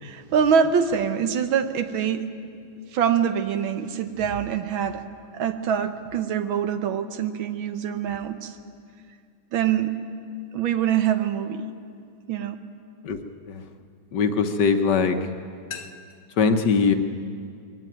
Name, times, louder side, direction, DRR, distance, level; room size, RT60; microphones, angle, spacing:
voice 1, 0.0-2.3 2.9-5.0 5.3-8.5 9.5-9.9 10.5-11.6 12.3-12.6, right 8 dB, 75° right, 9 dB, 1.8 m, -24 dB
voice 2, 14.1-15.2 15.7-15.9 16.4-16.9, left 5 dB, 60° left, 7 dB, 1.5 m, -21 dB
21.5 x 17.0 x 9.2 m, 2.3 s
omnidirectional pair, 2.2 m